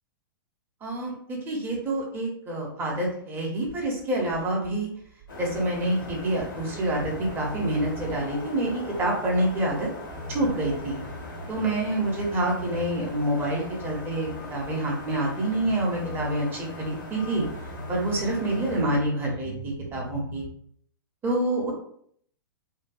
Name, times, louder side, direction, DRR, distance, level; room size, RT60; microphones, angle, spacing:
voice 1, 0.8-4.9 5.4-9.9 10.3-11.0 11.5-17.4 17.9-20.5 21.2-21.7, right 1 dB, 20° right, -2 dB, 0.7 m, -27 dB
sound 1, 3.7-9.8 10.0-13.2 13.4-15.3 15.6-19.0 19.3-20.5, equal, 50° right, 0.4 m, -41 dB
sound 2, 5.3-18.8, left 2 dB, 65° left, 0.8 m, -40 dB
2.6 x 2.2 x 2.3 m, 0.65 s
figure-of-eight pair, 105°, 12 cm